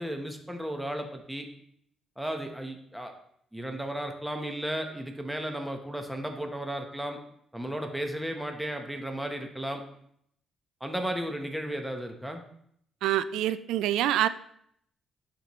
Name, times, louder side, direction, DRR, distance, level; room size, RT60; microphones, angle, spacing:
voice 1, 0.0-1.5 2.2-3.1 3.5-7.2 7.5-9.8 10.8-12.4, right 1 dB, 5° right, 4 dB, 1.1 m, -34 dB
voice 2, 13.0-14.3, right 12 dB, 90° right, 14 dB, 0.3 m, -26 dB
11.0 x 4.5 x 3.1 m, 0.70 s
cardioid pair, 90°, 0 cm